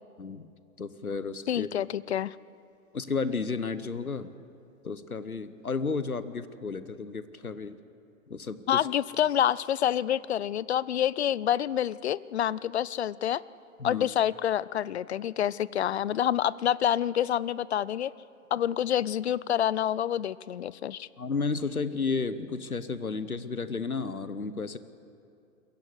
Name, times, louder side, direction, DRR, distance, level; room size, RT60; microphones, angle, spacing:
voice 1, 0.2-0.5 0.8-1.7 2.9-4.3 4.8-7.8 8.3-8.9 13.8-14.1 21.2-24.8, left 4 dB, 90° left, 14 dB, 0.9 m, -32 dB
voice 2, 1.5-2.4 8.7-13.4 13.8-18.1 18.5-21.1, left 10 dB, 50° left, 20 dB, 0.5 m, -27 dB
22.5 x 16.0 x 7.9 m, 2.6 s
figure-of-eight pair, 110°, 42 cm